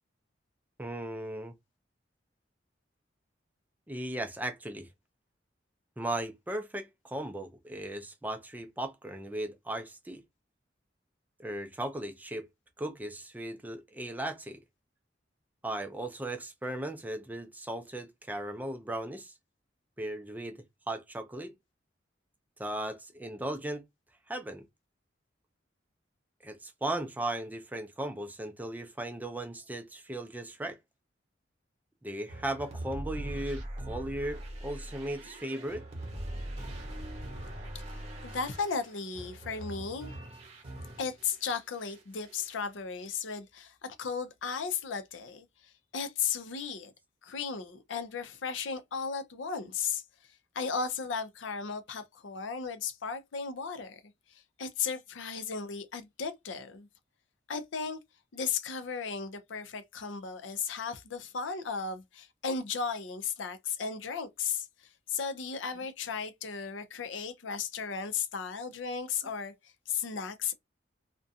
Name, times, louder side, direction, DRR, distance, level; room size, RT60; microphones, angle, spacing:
voice 1, 0.8-1.5 3.9-4.9 6.0-10.2 11.4-12.5 12.8-14.6 15.6-19.3 20.0-21.5 22.6-23.8 24.3-24.6 26.4-30.8 32.0-35.8, right 1 dB, 10° right, 0.4 m, -37 dB
sound 1, 32.3-41.4 41.8-42.6, right 1 dB, 35° right, 0.8 m, -42 dB
voice 2, 37.7-40.2 41.0-46.9 47.2-54.0 54.3-56.9 57.5-58.0 58.3-70.5, left 6 dB, 90° left, 0.5 m, -35 dB
2.4 x 2.1 x 2.6 m
head